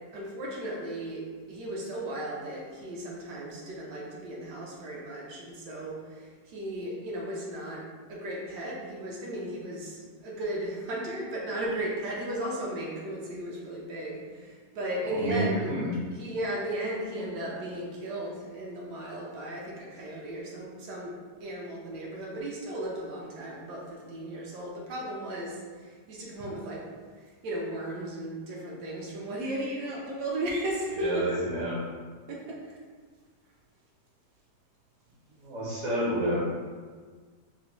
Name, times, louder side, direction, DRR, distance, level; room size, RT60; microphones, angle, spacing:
voice 1, 0.1-1.2 1.5-7.8 8.1-15.7 16.1-26.9 27.2-31.2 32.3-32.8, right 1 dB, 80° right, -3 dB, 1.2 m, -35 dB
voice 2, 15.1-16.0 31.0-32.0 35.4-36.5, right 1 dB, 55° right, -5 dB, 0.9 m, -29 dB
4.1 x 2.0 x 2.9 m, 1.5 s
omnidirectional pair, 1.8 m